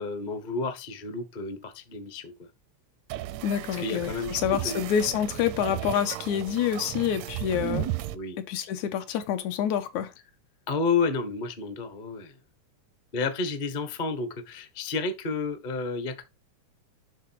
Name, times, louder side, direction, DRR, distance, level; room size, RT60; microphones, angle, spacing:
voice 1, 0.0-2.5 3.7-4.4 4.6-4.8 8.1-8.4 10.7-12.4 13.1-16.2, left 4 dB, 50° left, 0.5 m, -31 dB
sound 1, 3.1-8.1, right 14 dB, 80° right, 1.7 m, -35 dB
voice 2, 3.4-7.9 8.4-10.1, left 9 dB, 80° left, 2.3 m, -27 dB
11.5 x 3.8 x 4.6 m
omnidirectional pair, 3.3 m